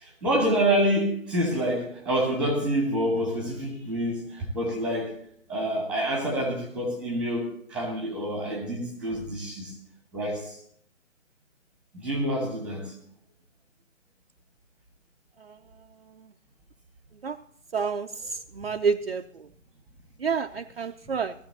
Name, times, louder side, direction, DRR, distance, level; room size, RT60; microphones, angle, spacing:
voice 1, 0.0-5.2 5.5-9.7 10.1-10.6 12.0-12.9, equal, 5° right, 1.3 m, -27 dB
voice 2, 17.7-18.1 18.6-19.2 20.2-21.3, right 5 dB, 45° right, 0.5 m, -28 dB
18.0 x 14.0 x 2.8 m
figure-of-eight pair, 145°, 41 cm